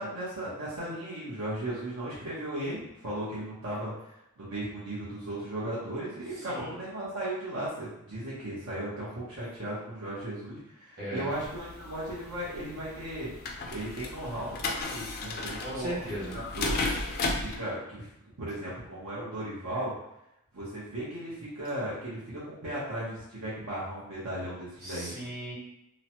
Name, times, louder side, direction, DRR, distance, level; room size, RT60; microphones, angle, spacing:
voice 1, 0.0-3.9 4.4-13.3 13.7-15.9 16.3-16.8 17.2-18.1 18.4-19.9 20.5-25.1, right 1 dB, 75° right, -9 dB, 0.8 m, -36 dB
voice 2, 11.0-11.3 15.6-16.4 24.8-25.5, right 1 dB, 45° right, -7 dB, 1.3 m, -37 dB
sound 1, 11.3-17.6, left 3 dB, 45° left, 0.4 m, -35 dB
3.0 x 2.1 x 2.8 m, 0.83 s
head